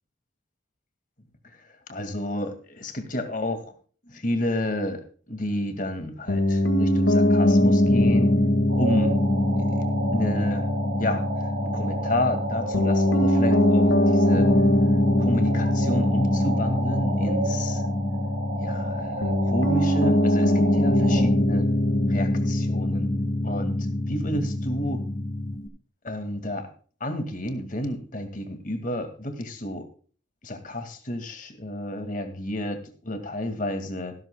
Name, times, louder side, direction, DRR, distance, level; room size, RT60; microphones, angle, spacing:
voice 1, 1.4-3.7 4.1-8.3 8.8-9.2 9.6-9.8 10.1-10.7 11.0-11.3 11.6-14.5 15.2-17.8 18.6-21.7 22.1-23.1 23.4-25.0 26.0-26.7 27.0-29.9 30.4-34.2, left 1 dB, 40° left, 7 dB, 2.0 m, -31 dB
Piano, 6.3-25.7, left 1 dB, 90° left, 1.8 m, -22 dB
sound 1, 8.7-21.2, right 2 dB, 65° right, 3.7 m, -33 dB
15.0 x 13.0 x 2.3 m, 0.41 s
head